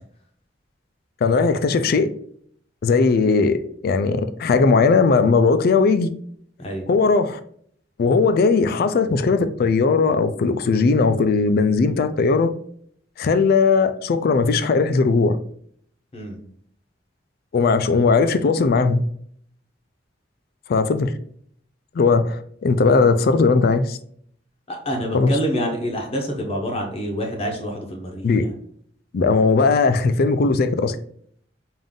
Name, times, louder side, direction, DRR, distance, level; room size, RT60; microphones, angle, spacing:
voice 1, 1.2-2.1 2.8-6.1 6.9-7.4 8.0-12.5 13.2-15.4 17.5-19.0 20.7-21.1 21.9-24.0 25.1-25.4 28.2-28.5 29.1-31.0, left 4 dB, 55° left, 0.3 m, -18 dB
voice 2, 24.7-28.5, equal, 30° left, 0.7 m, -27 dB
3.6 x 2.6 x 3.7 m
head